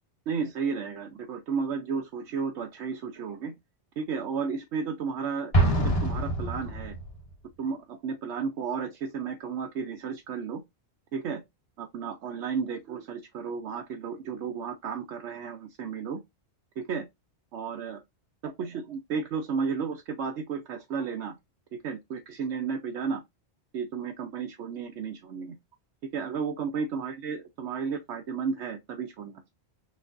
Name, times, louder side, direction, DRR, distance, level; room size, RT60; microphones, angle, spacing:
voice 1, 0.3-3.5 4.0-5.5 5.8-6.9 7.6-10.6 11.1-11.4 11.8-16.2 16.8-17.1 17.5-18.0 18.4-21.4 21.7-23.2 23.7-25.5 26.1-29.5, right 5 dB, 90° right, 1.0 m, -33 dB
Explosion, 5.5-7.2, right 1 dB, 30° left, 1.4 m, -25 dB
6.3 x 3.2 x 2.5 m
omnidirectional pair, 1.1 m